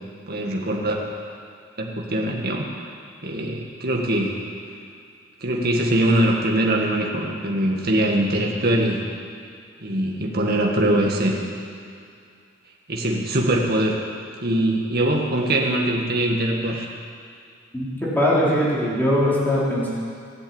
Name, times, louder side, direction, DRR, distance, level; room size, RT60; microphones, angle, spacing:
voice 1, 0.3-1.0 1.8-2.6 3.2-4.4 5.4-9.0 9.8-11.4 12.9-14.0 14.4-16.9, right 1 dB, 50° right, -1 dB, 1.7 m, -22 dB
voice 2, 17.7-19.9, equal, 10° left, -8 dB, 4.2 m, -21 dB
16.0 x 8.3 x 8.8 m, 2.3 s
head